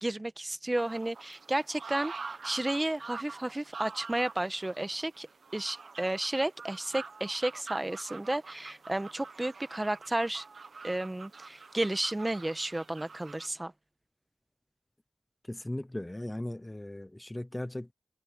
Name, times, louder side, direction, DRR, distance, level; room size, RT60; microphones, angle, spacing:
voice 1, 0.0-5.3 5.5-10.4 10.8-13.7, right 1 dB, 20° right, 1.1 m, -32 dB
sound 1, 0.8-13.5, right 4 dB, 70° right, 0.9 m, -46 dB
voice 2, 15.5-17.9, left 1 dB, 15° left, 0.7 m, -37 dB
wide cardioid pair, 80°, 0 cm